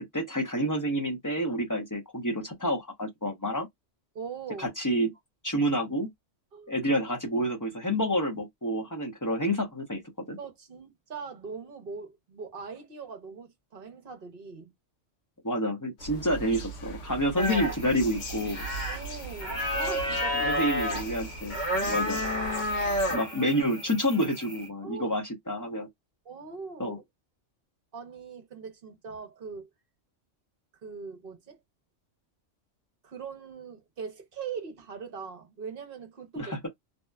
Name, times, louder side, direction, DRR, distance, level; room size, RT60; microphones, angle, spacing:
voice 1, 0.1-3.7 4.6-5.1 5.4-6.1 6.7-10.4 15.4-18.7 20.4-21.6 21.9-22.2 23.1-25.9 26.8-27.0 36.4-36.6, equal, 20° left, 0.5 m, -28 dB
voice 2, 4.1-4.7 6.5-6.7 9.2-9.4 10.4-14.7 18.9-20.6 21.8-22.0 24.8-25.2 26.2-27.0 27.9-29.7 30.8-31.6 33.0-36.7, right 5 dB, 55° right, 0.9 m, -41 dB
sound 1, 16.0-23.2, right 2 dB, 80° left, 1.0 m, -40 dB
sound 2, 17.4-24.7, left 1 dB, 45° left, 0.9 m, -31 dB
2.8 x 2.2 x 2.2 m
omnidirectional pair, 1.2 m